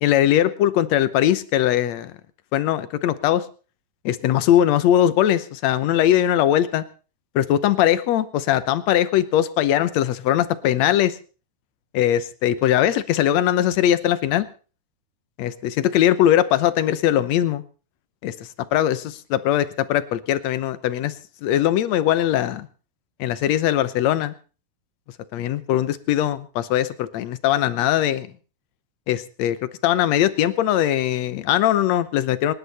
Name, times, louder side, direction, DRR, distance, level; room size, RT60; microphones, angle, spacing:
voice 1, 0.0-2.1 2.5-3.4 4.1-6.8 7.4-11.1 11.9-14.5 15.4-17.6 18.2-18.3 18.7-21.1 21.4-22.7 23.2-24.3 25.3-28.3 29.1-29.6 29.8-32.5, left 11 dB, 70° left, 14 dB, 2.1 m, -20 dB
27.0 x 10.5 x 4.2 m, 0.37 s
omnidirectional pair, 3.5 m